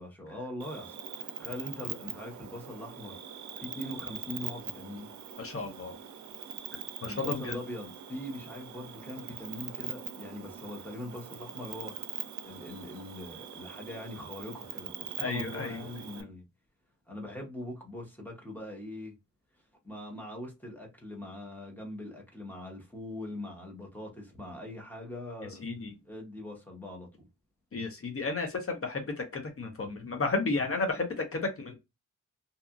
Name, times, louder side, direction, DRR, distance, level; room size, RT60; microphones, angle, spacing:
voice 1, 0.0-3.2 3.6-5.1 7.0-12.0 12.4-16.5 17.1-19.1 19.8-25.6 26.0-27.1, left 1 dB, 5° left, 0.8 m, -42 dB
Cricket, 0.6-16.2, right 8 dB, 70° right, 0.5 m, -42 dB
voice 2, 5.4-6.0 7.0-7.5 15.2-15.8 25.6-25.9 27.7-31.7, left 3 dB, 50° left, 0.6 m, -32 dB
2.7 x 2.3 x 2.4 m
wide cardioid pair, 140°, 30 cm